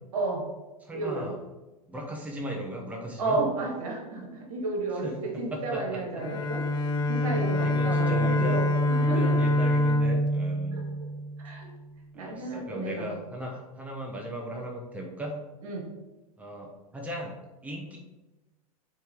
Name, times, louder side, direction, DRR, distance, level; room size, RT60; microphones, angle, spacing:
voice 1, 0.1-0.5 0.9-1.2 3.2-9.4 10.7-10.8 11.4-11.7 12.1-13.1 15.6-15.9, right 3 dB, 70° right, 1 dB, 1.6 m, -32 dB
voice 2, 0.8-1.4 1.9-3.4 5.0-6.5 7.2-8.6 9.0-10.9 12.1-15.4 16.4-18.0, equal, 10° right, 0 dB, 1.0 m, -37 dB
Bowed string instrument, 6.2-11.6, left 1 dB, 25° left, 0.4 m, -25 dB
7.6 x 3.4 x 3.7 m, 1.1 s
hypercardioid pair, 100°, 19 cm